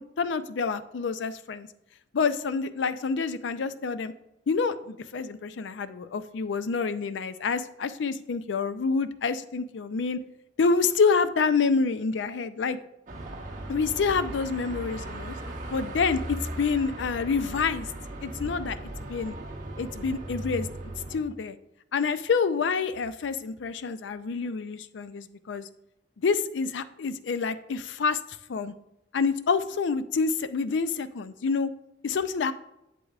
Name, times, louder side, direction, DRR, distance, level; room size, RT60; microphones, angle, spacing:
voice 1, 0.0-1.7 2.1-4.1 4.5-10.2 10.6-12.8 13.7-15.3 15.7-17.9 18.2-18.8 19.1-19.4 19.8-20.7 21.1-21.6 21.9-25.7 26.2-28.2 28.5-28.7 29.1-31.7 32.0-32.5, left 5 dB, 80° left, 13 dB, 0.4 m, -27 dB
Car passing by / Traffic noise roadway noise / Engine, 13.1-21.2, right 1 dB, 45° right, 1.2 m, -37 dB
7.9 x 7.6 x 2.4 m, 0.87 s
head